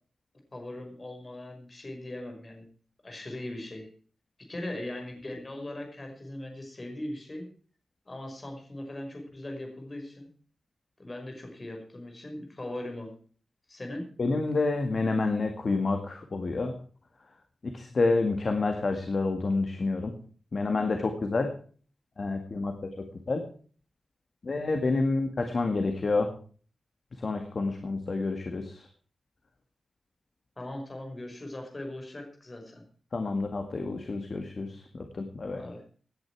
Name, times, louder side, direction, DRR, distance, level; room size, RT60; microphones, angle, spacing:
voice 1, 0.5-2.6 3.0-3.9 4.5-7.4 8.0-10.3 11.0-13.1 13.7-14.0 30.6-32.8 35.6-35.8, left 1 dB, 25° left, 3 dB, 5.2 m, -39 dB
voice 2, 14.2-16.7 17.7-20.1 20.5-21.5 22.2-22.7 23.3-23.4 24.4-26.3 27.2-28.9 33.1-35.6, left 3 dB, 45° left, 5 dB, 2.0 m, -28 dB
17.5 x 10.5 x 4.7 m, 0.43 s
wide cardioid pair, 145°, 0 cm